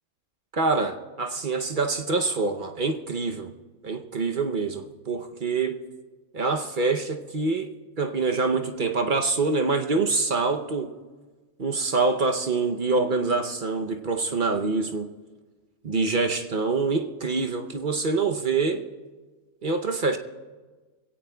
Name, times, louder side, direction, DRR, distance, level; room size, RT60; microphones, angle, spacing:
voice 1, 0.5-3.5 3.8-5.8 6.3-7.7 8.0-10.9 11.6-15.1 15.8-18.8 19.6-20.2, right 3 dB, 45° right, 5 dB, 0.7 m, -25 dB
23.0 x 16.5 x 2.2 m, 1.3 s
omnidirectional pair, 1.5 m